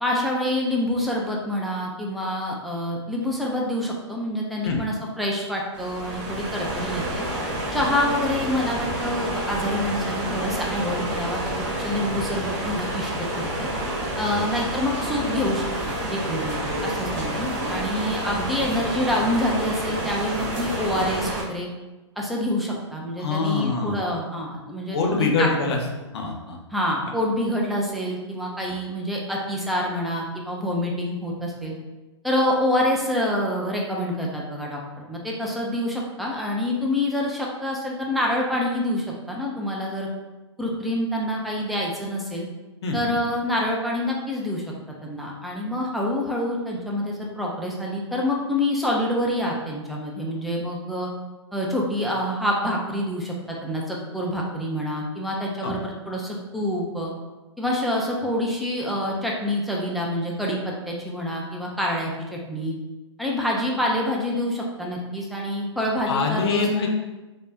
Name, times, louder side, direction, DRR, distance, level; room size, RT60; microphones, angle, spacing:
voice 1, 0.0-7.2 7.7-13.7 14.2-21.7 22.2-25.8 26.7-31.8 32.2-40.1 40.6-42.5 42.9-44.6 45.0-51.1 51.5-57.1 57.6-62.7 63.2-66.7, left 1 dB, ahead, -3 dB, 0.3 m, -27 dB
sound 1, 5.7-21.4, right 1 dB, 30° right, 1.0 m, -29 dB
voice 2, 23.2-24.0 24.9-25.8 26.1-26.6 42.8-43.2 55.6-55.8 66.1-66.9, left 4 dB, 60° left, 1 dB, 0.6 m, -24 dB
3.2 x 2.1 x 2.7 m, 1.1 s
hypercardioid pair, 125°, 15 cm